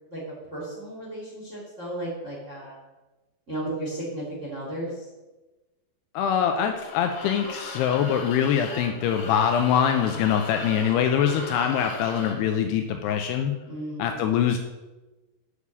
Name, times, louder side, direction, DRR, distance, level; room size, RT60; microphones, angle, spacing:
voice 1, 0.5-2.8 3.5-5.0 13.7-14.1, right 1 dB, 20° right, -4 dB, 2.2 m, -34 dB
voice 2, 6.1-13.6 14.0-14.6, left 8 dB, 80° left, 5 dB, 2.5 m, -23 dB
sound 1, 6.7-12.5, left 3 dB, 60° left, 3.3 m, -38 dB
8.2 x 6.5 x 7.2 m, 1.1 s
omnidirectional pair, 5.1 m